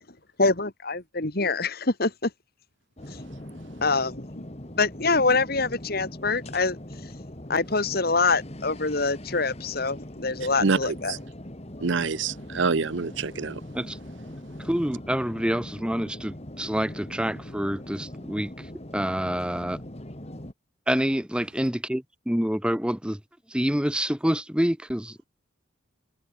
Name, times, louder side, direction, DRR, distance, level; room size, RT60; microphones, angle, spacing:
voice 1, 0.4-2.3 3.8-4.4 4.8-6.8 7.5-11.1, left 3 dB, 50° left, 2.2 m, -25 dB
sound 1, 3.0-20.5, left 1 dB, 30° left, 2.3 m, -41 dB
voice 2, 10.6-11.2 11.8-13.6, right 4 dB, 60° right, 0.7 m, -26 dB
voice 3, 14.6-18.5 18.9-19.8 20.9-23.2 23.5-25.3, equal, 5° right, 0.9 m, -27 dB
head